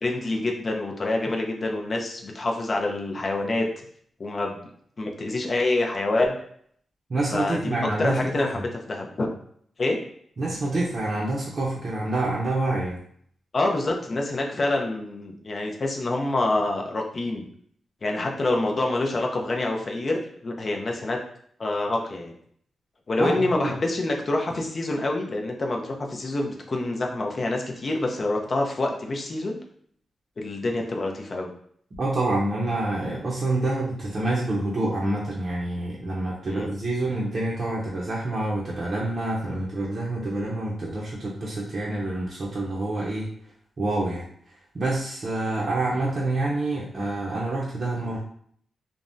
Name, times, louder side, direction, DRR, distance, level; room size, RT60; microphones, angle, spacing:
voice 1, 0.0-3.7 4.2-4.6 5.0-6.3 7.3-9.3 9.8-10.0 13.5-17.4 18.0-21.2 21.6-22.3 23.1-29.6 30.4-31.5 36.5-36.7, left 2 dB, 40° left, 1 dB, 0.5 m, -26 dB
voice 2, 7.1-8.6 10.4-13.0 23.2-23.8 32.0-43.3 43.8-48.2, right 2 dB, 50° right, -6 dB, 0.6 m, -27 dB
3.4 x 2.0 x 2.6 m, 0.63 s
wide cardioid pair, 105°, 0 cm